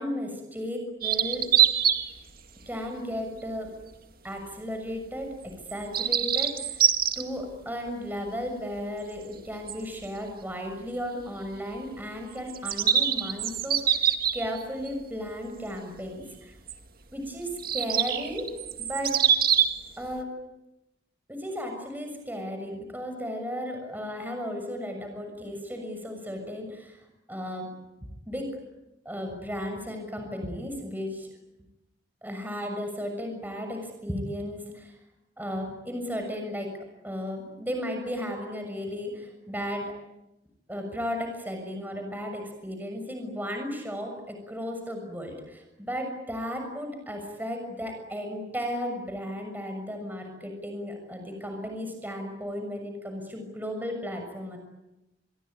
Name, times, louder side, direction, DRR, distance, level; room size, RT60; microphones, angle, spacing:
voice 1, 0.0-1.5 2.7-3.7 4.2-6.8 7.2-16.6 17.1-18.5 18.9-19.2 20.0-20.3 21.3-27.0 27.3-27.7 28.3-28.5 29.0-31.3 32.2-35.0 35.4-36.7 37.0-39.9 40.7-54.6, equal, 10° right, 4 dB, 6.6 m, -35 dB
sound 1, 1.0-2.1 2.6-2.8 3.7-3.8 5.6-7.2 9.7-9.8 10.0-10.1 12.5-14.9 16.7-16.8 17.6-19.8, right 9 dB, 55° right, 2.1 m, -24 dB
28.0 x 22.5 x 9.4 m, 0.94 s
head